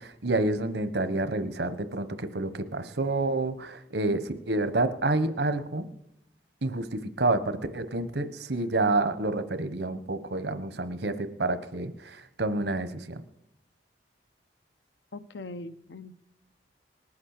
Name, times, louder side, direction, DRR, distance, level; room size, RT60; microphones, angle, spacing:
voice 1, 0.0-5.9 6.6-13.2, right 2 dB, 70° right, 11 dB, 1.1 m, -29 dB
voice 2, 15.1-16.1, left 2 dB, 85° left, 13 dB, 0.8 m, -41 dB
19.5 x 8.6 x 6.6 m, 0.81 s
head